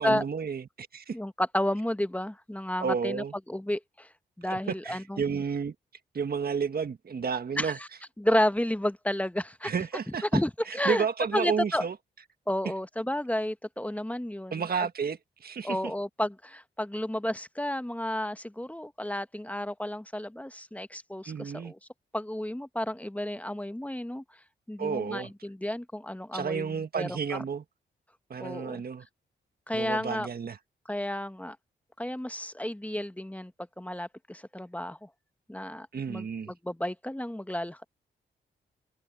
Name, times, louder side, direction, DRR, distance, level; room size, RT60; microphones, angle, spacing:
voice 1, 0.0-1.2 2.8-3.3 4.5-5.7 6.1-7.8 9.6-10.2 10.7-11.9 14.5-15.8 21.2-21.7 24.8-25.3 26.3-27.6 28.3-29.0 29.7-30.6 35.9-36.5, right 6 dB, 55° right, 1.6 m, -31 dB
voice 2, 1.1-4.1 4.4-5.2 7.6-7.9 8.2-9.7 10.2-11.1 11.3-11.8 12.5-14.6 15.6-21.8 22.1-24.2 24.7-27.4 28.4-28.8 29.7-30.3 30.9-31.6 32.0-33.5 33.8-35.1 35.5-37.8, left 1 dB, 5° left, 1.2 m, -31 dB
supercardioid pair, 50°, 19 cm